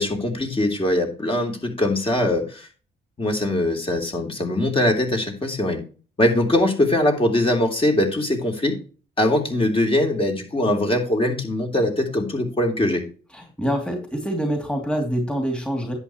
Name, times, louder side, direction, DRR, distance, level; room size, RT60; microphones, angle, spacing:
voice 1, 0.0-2.7 3.2-5.8 6.2-8.8 9.2-13.0, left 1 dB, 25° left, 2 dB, 3.3 m, -22 dB
voice 2, 13.3-15.9, equal, 5° left, 2 dB, 2.8 m, -25 dB
10.5 x 8.3 x 3.1 m, 0.36 s
cardioid pair, 90°, 20 cm